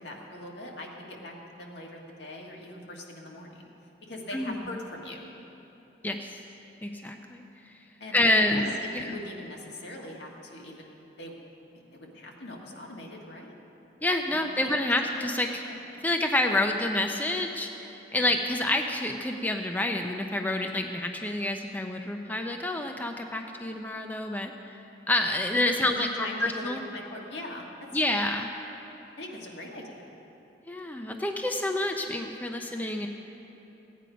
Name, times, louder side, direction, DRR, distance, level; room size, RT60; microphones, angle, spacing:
voice 1, 0.0-3.7 4.1-5.2 8.0-11.4 11.7-13.5 14.3-14.7 15.0-15.1 15.6-15.8 18.1-18.3 25.8-27.7 29.2-30.1 32.5-32.7, left 1 dB, 80° left, -1 dB, 1.7 m, -41 dB
voice 2, 6.0-6.4 6.8-7.4 8.1-8.7 8.9-9.2 14.0-15.6 16.0-24.8 25.1-26.8 27.9-28.5 30.7-33.1, left 1 dB, 10° left, 4 dB, 0.5 m, -28 dB
16.0 x 9.3 x 5.0 m, 3.0 s
head